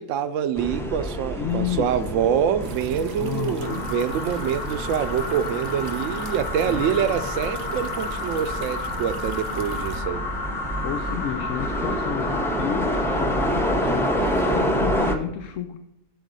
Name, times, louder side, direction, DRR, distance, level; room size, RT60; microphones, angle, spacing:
voice 1, 0.0-10.2, right 8 dB, 70° right, 0.9 m, -25 dB
sound 1, 0.6-15.1, right 1 dB, 5° left, 0.4 m, -29 dB
voice 2, 1.4-2.1 3.2-3.9 6.6-7.0 10.8-15.8, left 10 dB, 70° left, 0.9 m, -31 dB
sound 2, 2.6-10.0, right 7 dB, 50° right, 0.5 m, -41 dB
sound 3, 3.6-15.2, left 3 dB, 55° left, 1.4 m, -32 dB
11.5 x 3.9 x 5.3 m
omnidirectional pair, 1.4 m